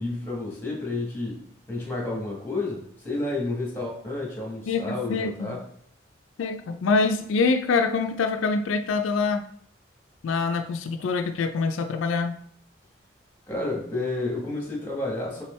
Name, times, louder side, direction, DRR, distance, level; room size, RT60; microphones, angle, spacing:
voice 1, 0.0-1.4 1.7-5.6 13.5-15.4, left 2 dB, 10° left, -2 dB, 1.3 m, -30 dB
voice 2, 4.7-5.6 6.4-9.4 10.2-12.4, left 4 dB, 80° left, 6 dB, 0.3 m, -25 dB
4.4 x 3.6 x 3.1 m, 0.64 s
head